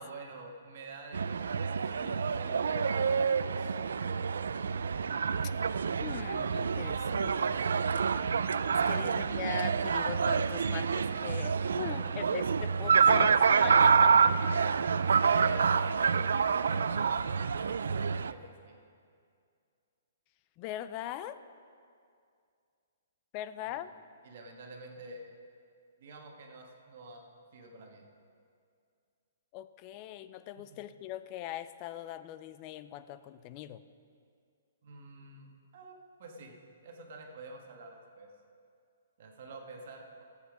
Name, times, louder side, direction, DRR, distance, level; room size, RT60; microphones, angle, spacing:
voice 1, 0.0-3.7 8.9-9.1 11.4-12.3 15.1-15.7 16.7-18.8 23.6-23.8 24.2-25.3 26.0-27.3 27.5-28.1 30.6-30.8 34.8-36.5 36.8-38.3 39.2-40.2, right 2 dB, 45° right, 2 dB, 1.5 m, -48 dB
sound 1, 1.1-18.3, right 6 dB, 90° right, 0.4 m, -27 dB
voice 2, 6.0-7.6 8.7-15.1 20.6-21.4 23.3-23.9 29.5-33.8, left 12 dB, 25° left, 13 dB, 0.3 m, -41 dB
14.0 x 8.3 x 5.0 m, 2.3 s
hypercardioid pair, 165°, 0 cm